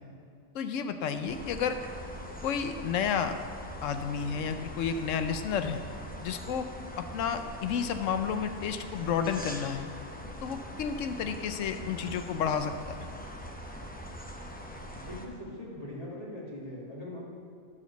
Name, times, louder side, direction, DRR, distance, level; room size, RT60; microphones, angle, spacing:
voice 1, 0.5-1.8 2.4-3.4 3.8-5.8 6.2-6.7 7.0-9.9 10.4-13.0, left 7 dB, 75° left, 8 dB, 0.9 m, -31 dB
sound 1, 1.3-15.3, equal, 10° left, 0.4 m, -42 dB
voice 2, 14.9-17.2, left 1 dB, 30° left, -6 dB, 2.2 m, -41 dB
9.9 x 4.4 x 6.9 m, 2.3 s
omnidirectional pair, 1.4 m